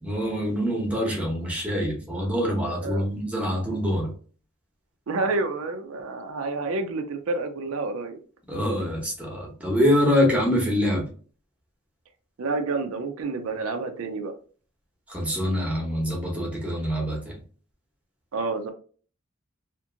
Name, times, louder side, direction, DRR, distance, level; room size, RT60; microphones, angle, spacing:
voice 1, 0.0-4.1 8.5-11.1 15.1-17.4, equal, 5° right, -1 dB, 0.8 m, -25 dB
voice 2, 5.1-8.2 12.4-14.3 18.3-18.7, right 3 dB, 80° right, 6 dB, 0.5 m, -29 dB
2.8 x 2.5 x 2.4 m, 0.42 s
head